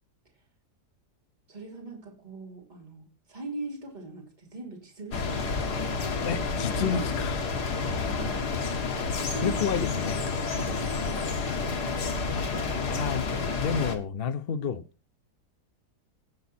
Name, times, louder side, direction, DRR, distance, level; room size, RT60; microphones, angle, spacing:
voice 1, 1.5-5.7 6.7-7.0 8.0-8.4 9.2-9.6 10.5-11.3 12.4-13.1, right 2 dB, 25° right, 3.3 m, -41 dB
sound 1, 5.1-14.0, left 4 dB, 75° left, 2.2 m, -30 dB
voice 2, 6.2-7.4 9.4-10.2 12.9-13.3 13.6-14.9, left 7 dB, 50° left, 0.8 m, -30 dB
18.0 x 7.2 x 4.3 m
omnidirectional pair, 1.7 m